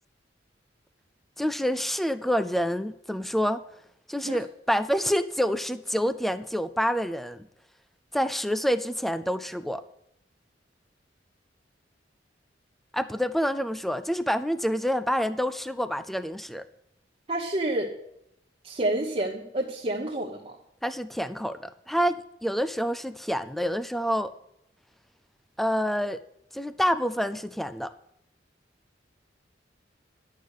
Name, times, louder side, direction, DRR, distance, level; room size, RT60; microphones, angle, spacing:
voice 1, 1.4-3.6 4.1-7.4 8.1-9.8 12.9-16.6 20.8-24.3 25.6-26.2 26.5-27.9, equal, ahead, 13 dB, 0.4 m, -27 dB
voice 2, 17.3-17.9 18.6-20.5, right 1 dB, 30° right, 1 dB, 1.0 m, -29 dB
11.0 x 6.6 x 8.2 m, 0.78 s
head